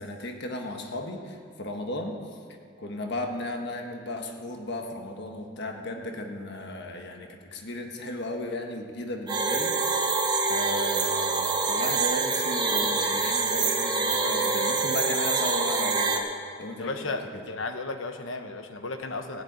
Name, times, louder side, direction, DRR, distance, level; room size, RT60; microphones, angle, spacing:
voice 1, 0.0-2.4 2.8-10.1 10.5-16.3 16.6-17.2, left 1 dB, 60° left, 3 dB, 1.4 m, -35 dB
sound 1, 9.3-16.2, right 3 dB, 20° right, 1.3 m, -26 dB
voice 2, 16.8-19.4, left 3 dB, 75° left, 7 dB, 1.1 m, -34 dB
16.0 x 8.3 x 9.2 m, 2.2 s
head